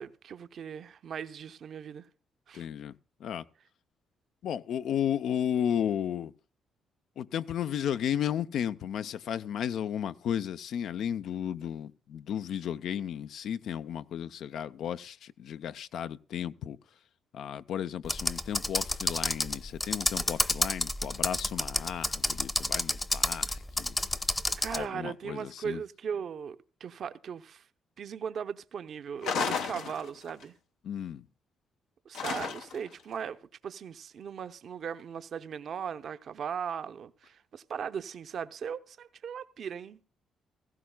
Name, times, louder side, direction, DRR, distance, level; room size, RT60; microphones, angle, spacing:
voice 1, 0.0-2.1 2.5-2.7 24.6-27.7 28.0-30.5 32.1-33.4 33.6-40.0, right 7 dB, 60° right, 0.7 m, -38 dB
voice 2, 2.5-3.4 4.4-6.3 7.2-16.8 17.3-24.0 24.7-25.8 30.8-31.3, left 9 dB, 70° left, 0.5 m, -34 dB
Computer keyboard, 18.0-24.8, left 1 dB, 15° left, 0.8 m, -30 dB
sound 1, 29.2-30.4 32.1-32.9, left 6 dB, 90° left, 1.1 m, -33 dB
17.0 x 15.0 x 2.3 m
cardioid pair, 90°, 0 cm